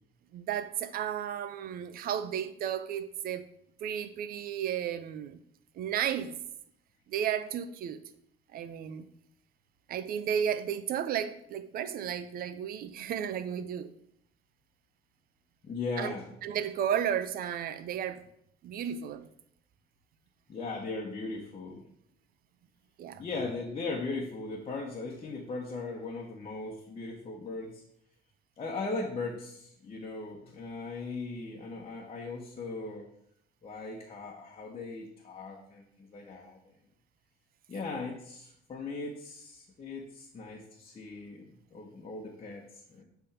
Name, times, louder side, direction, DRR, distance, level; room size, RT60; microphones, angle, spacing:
voice 1, 0.3-3.4 3.8-5.4 5.8-6.4 7.1-8.0 8.5-9.1 9.9-13.9 16.0-16.1 16.4-18.2 18.6-19.3 23.0-23.2, right 9 dB, 60° right, 0.6 m, -33 dB
voice 2, 15.6-16.3 20.5-21.9 23.2-27.8 28.6-33.1 33.6-36.7 37.7-43.0, left 3 dB, 35° left, 1.2 m, -38 dB
8.3 x 3.5 x 5.8 m
cardioid pair, 110°, 17 cm